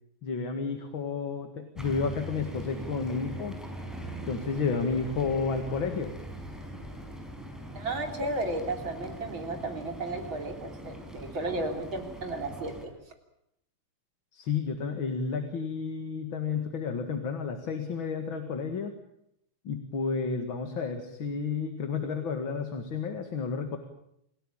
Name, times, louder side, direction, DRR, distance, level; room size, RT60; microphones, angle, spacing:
voice 1, 0.2-3.5 4.2-6.1 14.3-18.9 19.6-23.8, left 5 dB, 65° left, 6 dB, 2.7 m, -31 dB
sound 1, 1.7-12.9, equal, ahead, 4.9 m, -41 dB
voice 2, 7.7-12.9, right 2 dB, 60° right, 4 dB, 4.3 m, -34 dB
28.0 x 17.0 x 9.1 m, 0.78 s
omnidirectional pair, 2.4 m